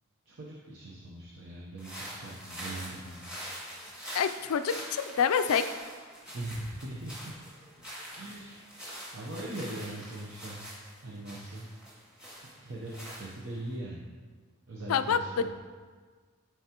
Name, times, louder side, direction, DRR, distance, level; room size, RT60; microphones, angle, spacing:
voice 1, 0.3-3.2 6.3-7.3 8.1-8.7 9.1-10.6 11.0-11.7 12.6-14.0 14.7-15.5, right 1 dB, 60° right, -4 dB, 0.8 m, -40 dB
sound 1, 1.8-13.7, equal, 5° right, 1.7 m, -44 dB
voice 2, 4.1-5.6 14.9-15.5, left 7 dB, 80° left, 11 dB, 0.4 m, -27 dB
11.0 x 4.7 x 2.9 m, 1.5 s
head